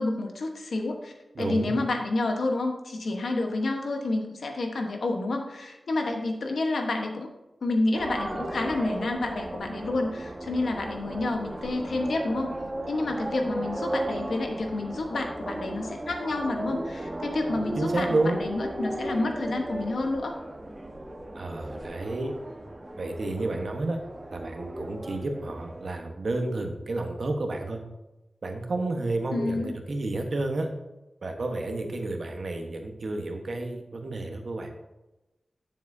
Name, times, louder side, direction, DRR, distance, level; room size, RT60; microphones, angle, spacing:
voice 1, 0.0-7.3 7.6-12.5 12.9-18.1 18.4-20.4 29.3-29.7, left 2 dB, 85° left, 3 dB, 1.1 m, -29 dB
voice 2, 1.3-1.8 17.5-18.4 21.3-22.3 23.0-24.0 24.3-27.8 28.4-30.7 31.2-34.7, right 2 dB, 65° right, 3 dB, 1.2 m, -30 dB
sound 1, 7.9-25.9, right 1 dB, 30° right, 1.1 m, -36 dB
9.6 x 7.1 x 2.7 m, 1.0 s
wide cardioid pair, 65°, 0 cm